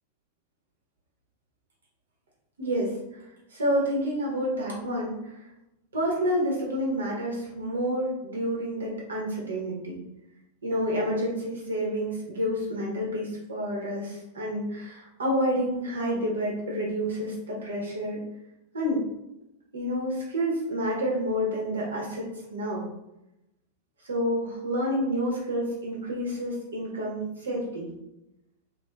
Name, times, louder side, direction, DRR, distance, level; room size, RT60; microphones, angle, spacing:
voice 1, 2.6-3.2 3.5-5.5 5.9-10.0 10.6-18.2 18.7-19.0 19.7-22.9 24.0-27.9, equal, 70° right, -3 dB, 0.8 m, -29 dB
3.2 x 2.6 x 2.2 m, 0.89 s
figure-of-eight pair, 90°, 0 cm